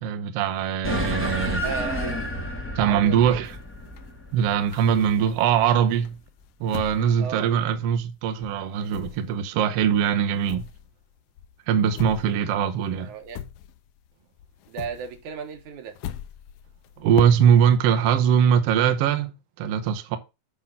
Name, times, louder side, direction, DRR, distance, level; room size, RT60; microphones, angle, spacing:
voice 1, 0.0-1.6 2.8-3.5 4.3-6.1 6.6-10.6 11.7-13.1 17.0-19.3 19.6-20.2, right 8 dB, 65° right, 1.7 m, -21 dB
sound 1, 0.8-5.6, left 1 dB, 15° left, 0.4 m, -30 dB
voice 2, 1.6-2.3 2.7-3.5 7.2-7.5 12.9-13.4 14.7-16.0, right 7 dB, 85° right, 2.6 m, -34 dB
sound 2, 3.4-5.6 6.0-8.2 8.4-14.1 14.4-17.8, left 11 dB, 90° left, 1.3 m, -40 dB
8.6 x 3.7 x 5.3 m
omnidirectional pair, 3.3 m